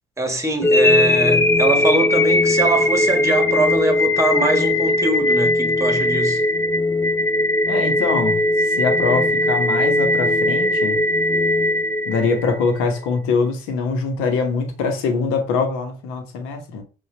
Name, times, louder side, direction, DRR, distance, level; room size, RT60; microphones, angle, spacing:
voice 1, 0.2-6.4, right 2 dB, 15° right, 1.4 m, -22 dB
sound 1, 0.6-12.7, left 1 dB, 10° left, 0.5 m, -19 dB
voice 2, 7.7-11.0 12.1-16.8, left 4 dB, 75° left, 1.0 m, -23 dB
5.6 x 2.5 x 2.8 m
hypercardioid pair, 55°, 21 cm